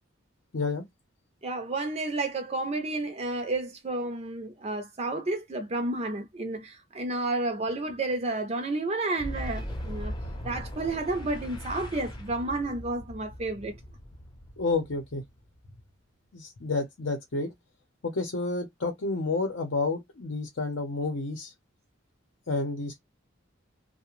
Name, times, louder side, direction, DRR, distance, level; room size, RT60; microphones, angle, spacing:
voice 1, 0.5-0.8 14.6-15.2 16.3-17.5 18.0-21.5 22.5-23.0, left 3 dB, 65° left, 0.7 m, -30 dB
voice 2, 1.4-10.1 10.4-13.7, right 2 dB, 30° right, 0.5 m, -31 dB
Boom, 9.2-15.7, equal, 20° left, 0.6 m, -39 dB
2.4 x 2.1 x 2.9 m
head